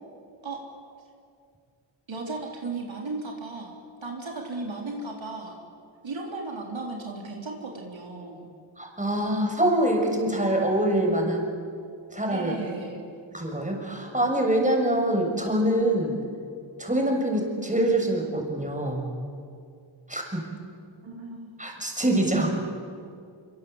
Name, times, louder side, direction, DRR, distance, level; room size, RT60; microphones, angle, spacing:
voice 1, 2.1-3.8 4.0-5.6 6.0-8.5 12.3-13.0 21.0-21.5, right 3 dB, 65° right, 0 dB, 4.1 m, -35 dB
voice 2, 8.8-11.5 12.1-12.5 13.3-16.2 16.8-19.1 20.1-20.5 21.6-22.5, right 1 dB, 15° right, 1 dB, 6.7 m, -25 dB
25.5 x 25.5 x 8.2 m, 2.3 s
cardioid pair, 60°, 49 cm